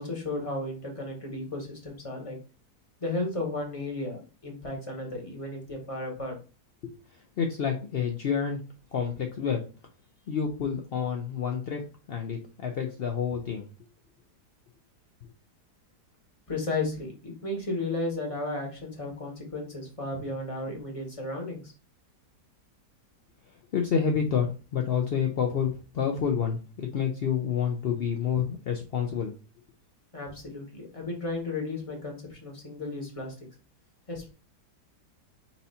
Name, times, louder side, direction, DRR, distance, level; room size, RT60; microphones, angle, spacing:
voice 1, 0.0-2.4 3.0-6.4 16.5-21.7 30.1-33.3 34.1-34.3, left 2 dB, 20° left, 0 dB, 1.3 m, -34 dB
voice 2, 7.4-8.6 8.9-9.6 10.3-11.8 12.1-13.7 23.7-29.3, left 7 dB, 80° left, 3 dB, 0.5 m, -28 dB
4.4 x 2.7 x 4.1 m, 0.35 s
omnidirectional pair, 1.8 m